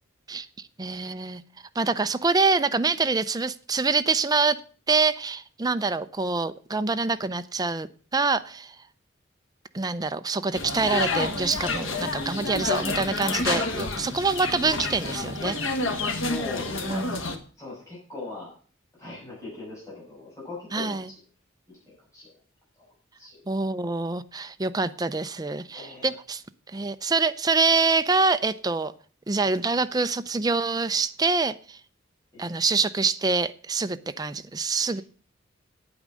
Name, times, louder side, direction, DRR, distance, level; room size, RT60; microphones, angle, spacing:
voice 1, 0.3-1.4 1.7-4.6 4.9-8.8 9.7-15.7 16.9-17.2 20.7-21.1 23.5-26.4 26.7-28.9 29.3-31.8 32.4-35.0, right 4 dB, 20° right, 11 dB, 0.5 m, -25 dB
sound 1, 10.5-17.4, left 3 dB, 90° left, 1.6 m, -29 dB
voice 2, 16.0-17.0 17.6-18.5 19.0-21.0 21.8-22.3 23.2-23.4 25.7-26.1 32.3-32.5 34.8-35.0, left 2 dB, 15° left, -7 dB, 6.7 m, -39 dB
9.4 x 8.7 x 6.3 m, 0.42 s
head